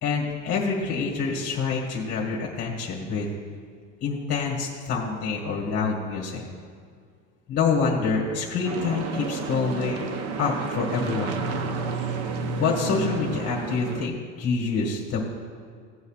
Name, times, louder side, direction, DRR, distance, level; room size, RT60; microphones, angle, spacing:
voice 1, 0.0-3.3 4.0-6.4 7.5-10.0 10.4-11.4 12.6-15.2, left 5 dB, 30° left, -2 dB, 1.6 m, -26 dB
sound 1, 8.6-14.1, right 4 dB, 45° right, 0.8 m, -31 dB
16.5 x 8.1 x 2.4 m, 2.1 s
supercardioid pair, 145°, 35 cm